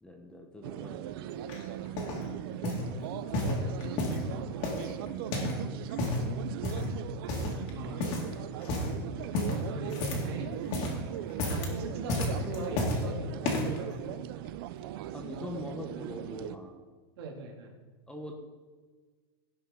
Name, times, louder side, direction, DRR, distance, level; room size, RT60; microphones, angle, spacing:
voice 1, 0.0-1.0 1.3-1.5 2.9-3.1 5.0-5.3 15.1-16.7 18.1-18.3, left 1 dB, 5° left, 3 dB, 1.0 m, -43 dB
sound 1, 0.6-16.6, right 12 dB, 65° right, 0.5 m, -39 dB
sound 2, 1.5-2.2 2.6-2.9 3.3-4.3 4.6-5.6 5.9-6.3 6.6-6.9 7.3-7.7 8.0-8.3 8.6-8.9 9.3-10.4 10.6-11.0 11.3-11.7 12.1-13.0 13.4-13.8 14.4-14.5, left 2 dB, 45° left, 2.3 m, -31 dB
voice 2, 4.1-4.5 7.7-8.1 9.6-10.5 11.5-14.2 17.2-17.7, right 3 dB, 80° right, 0 dB, 2.4 m, -40 dB
17.0 x 5.9 x 3.8 m, 1.4 s
supercardioid pair, 150°, 13 cm